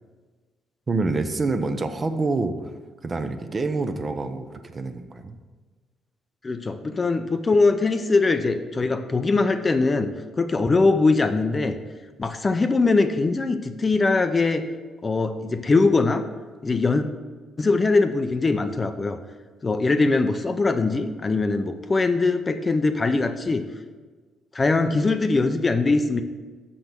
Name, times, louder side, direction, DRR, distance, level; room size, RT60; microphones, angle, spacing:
voice 1, 0.9-2.7 3.0-5.4, right 3 dB, 30° right, 8 dB, 0.6 m, -27 dB
voice 2, 6.4-11.8 12.2-14.6 15.0-16.2 16.6-17.0 17.6-19.2 19.6-23.6 24.5-26.2, left 3 dB, 25° left, 8 dB, 0.5 m, -21 dB
6.1 x 5.9 x 6.7 m, 1.4 s
cardioid pair, 105°, 0 cm